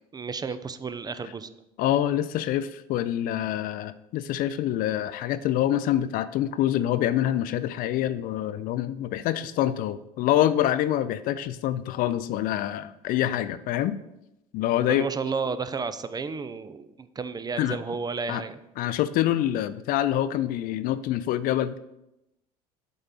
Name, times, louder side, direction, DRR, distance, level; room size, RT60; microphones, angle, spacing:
voice 1, 0.1-1.5 14.9-18.6, right 5 dB, 20° right, 12 dB, 0.4 m, -32 dB
voice 2, 1.8-14.0 14.5-15.1 17.6-17.8 18.3-18.4 18.8-21.8, left 12 dB, 50° left, 14 dB, 0.4 m, -26 dB
7.8 x 4.3 x 3.8 m, 0.88 s
hypercardioid pair, 65°, 19 cm